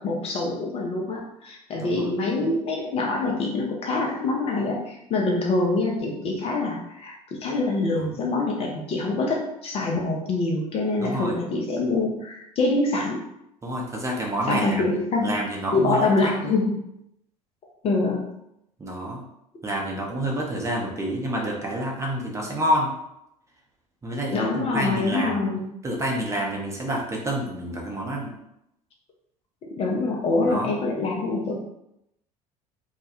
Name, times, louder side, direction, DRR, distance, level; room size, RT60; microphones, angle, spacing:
voice 1, 0.0-13.2 14.5-15.4 15.7-16.8 17.8-18.3 24.3-25.7 29.6-31.6, left 3 dB, 30° left, -1 dB, 0.4 m, -25 dB
voice 2, 11.0-11.3 13.6-14.8 15.2-16.5 18.8-19.2 19.6-22.9 24.0-25.5 25.8-28.3 30.5-30.7, right 1 dB, 15° right, -2 dB, 0.6 m, -28 dB
2.2 x 2.0 x 2.8 m, 0.80 s
figure-of-eight pair, 65°, 20 cm